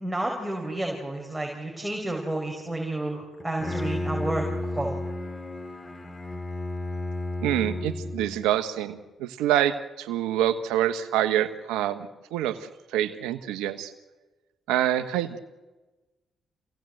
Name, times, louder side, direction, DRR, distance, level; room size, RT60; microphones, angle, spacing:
voice 1, 0.0-5.0, right 1 dB, 10° right, 0 dB, 5.0 m, -31 dB
Bowed string instrument, 3.4-8.5, left 2 dB, 30° left, 2.4 m, -32 dB
voice 2, 7.4-12.6 12.9-13.9 14.7-15.4, right 12 dB, 85° right, 11 dB, 1.2 m, -26 dB
27.0 x 17.5 x 7.9 m, 1.2 s
hypercardioid pair, 50°, 0 cm